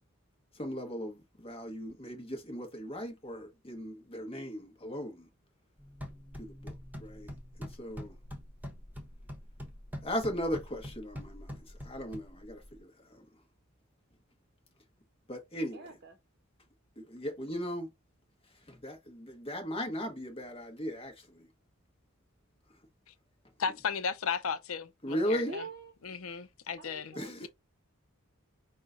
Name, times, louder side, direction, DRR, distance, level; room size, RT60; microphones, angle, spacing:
voice 1, 0.6-5.2 6.4-6.7 7.0-7.3 7.6-8.1 10.0-12.9 15.3-15.8 17.0-17.9 18.7-21.1 25.0-25.5 27.2-27.5, equal, 25° left, 1.0 m, -37 dB
sound 1, 5.8-12.8, equal, 10° right, 1.0 m, -45 dB
voice 2, 15.7-16.2 25.4-25.9 26.8-27.3, right 2 dB, 50° right, 0.7 m, -45 dB
voice 3, 23.6-25.6 26.0-27.2 27.4-27.5, left 6 dB, 75° left, 0.6 m, -35 dB
5.4 x 2.2 x 3.7 m
head